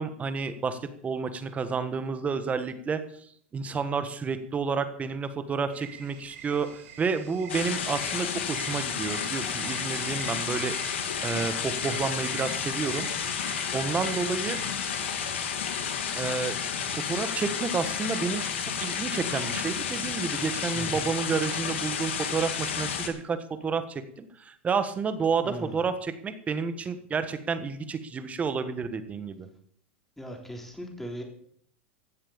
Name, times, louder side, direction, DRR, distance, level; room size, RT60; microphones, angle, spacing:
voice 1, 0.0-3.0 3.5-10.7 11.2-13.1 13.7-14.6 16.1-16.5 16.8-29.5, right 5 dB, 20° right, 10 dB, 1.5 m, -30 dB
sound 1, 5.7-15.8, right 7 dB, 65° right, 5.0 m, -46 dB
sound 2, 7.5-23.1, left 7 dB, 85° left, 2.2 m, -31 dB
voice 2, 30.2-31.2, equal, 5° left, 2 dB, 3.4 m, -38 dB
15.0 x 7.5 x 7.1 m, 0.65 s
hypercardioid pair, 120°, 6 cm